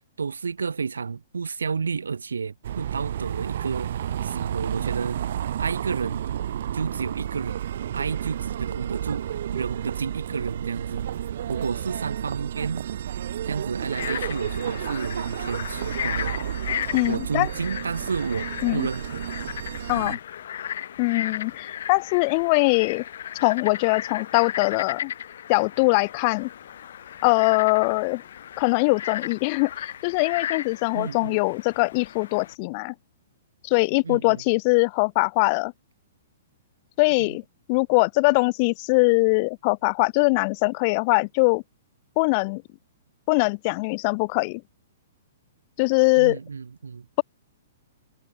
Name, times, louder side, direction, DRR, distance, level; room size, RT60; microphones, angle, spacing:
voice 1, 0.2-3.9 4.2-5.2 5.6-6.2 6.7-7.6 7.9-9.3 9.5-11.1 11.5-12.8 13.5-16.4 17.0-19.2 19.9-20.2 30.9-31.4 34.0-34.4 37.3-37.4 46.2-47.1, right 5 dB, 75° right, 3.1 m, -31 dB
sound 1, 2.6-20.1, right 10 dB, 60° right, 1.4 m, -31 dB
Frog, 13.8-32.5, left 10 dB, 60° left, 7.1 m, -35 dB
voice 2, 16.9-17.5 18.6-18.9 19.9-20.2 21.0-23.0 23.4-25.1 25.5-26.5 27.2-28.2 28.6-32.9 33.6-35.7 37.0-37.4 37.7-41.6 42.2-42.6 43.3-44.6 45.8-46.4, left 30 dB, 40° left, 0.7 m, -22 dB
figure-of-eight pair, 115°, 0 cm